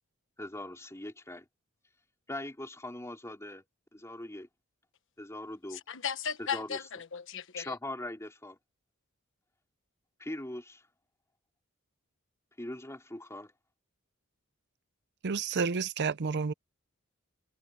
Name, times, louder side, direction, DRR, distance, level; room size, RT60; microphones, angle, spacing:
voice 1, 0.4-1.5 2.3-3.6 3.9-4.5 5.2-5.8 6.4-6.9 7.6-8.6 10.2-10.8 12.6-13.5, left 1 dB, 15° left, 3.6 m, -41 dB
voice 2, 5.7-7.7, left 7 dB, 65° left, 1.4 m, -36 dB
voice 3, 15.2-16.5, right 5 dB, 55° right, 0.6 m, -30 dB
head